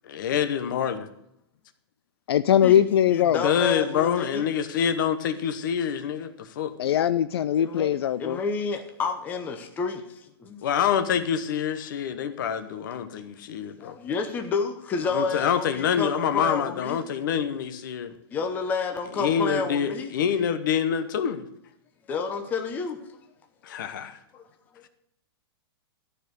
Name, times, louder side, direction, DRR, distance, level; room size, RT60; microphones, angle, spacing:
voice 1, 0.1-1.1 3.4-6.8 10.6-14.0 15.1-18.1 19.1-21.5 23.6-24.2, left 8 dB, 50° left, 1.0 m, -26 dB
voice 2, 2.3-3.4 6.8-8.4, left 10 dB, 70° left, 0.4 m, -21 dB
voice 3, 3.1-4.4 7.6-10.0 10.4-10.6 13.8-17.0 18.3-20.2 22.1-23.0, left 4 dB, 15° left, 0.8 m, -30 dB
13.5 x 4.5 x 8.2 m
hypercardioid pair, 170°, 13 cm